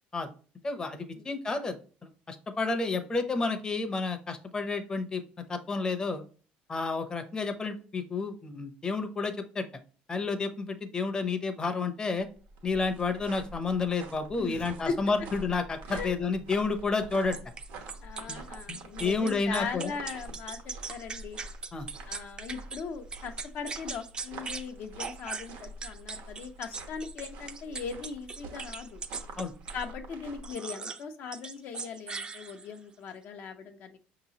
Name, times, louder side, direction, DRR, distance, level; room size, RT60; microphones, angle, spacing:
voice 1, 0.6-1.8 2.3-5.2 5.5-6.2 6.7-9.6 10.1-12.3 12.6-17.4 18.3-18.4 18.7-19.9 21.7-21.9 29.4-29.5, left 4 dB, 20° left, 7 dB, 0.6 m, -30 dB
sound 1, 12.2-30.5, right 2 dB, 85° right, 1.0 m, -46 dB
voice 2, 14.4-15.0 15.9-16.1 18.0-21.4 22.1-29.0 29.7-34.0, left 5 dB, 60° left, 5 dB, 0.6 m, -39 dB
sound 2, 17.3-22.8 23.1-24.7 25.0-29.9 30.4-31.0 31.3-32.8, right 4 dB, 25° right, 0.4 m, -40 dB
5.5 x 2.9 x 2.8 m, 0.39 s
cardioid pair, 125°, 4 cm